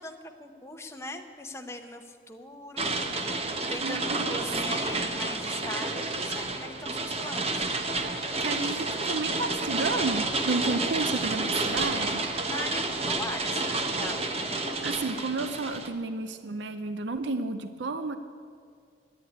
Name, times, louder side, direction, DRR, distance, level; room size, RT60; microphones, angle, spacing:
voice 1, 0.0-7.7 12.4-14.7, left 2 dB, 15° left, 4 dB, 0.9 m, -40 dB
sound 1, 2.8-15.9, right 2 dB, 35° right, 0.9 m, -30 dB
voice 2, 3.8-4.4 4.7-5.1 8.4-12.3 14.8-18.2, right 3 dB, 75° right, 10 dB, 0.6 m, -32 dB
11.0 x 10.0 x 9.2 m, 2.2 s
head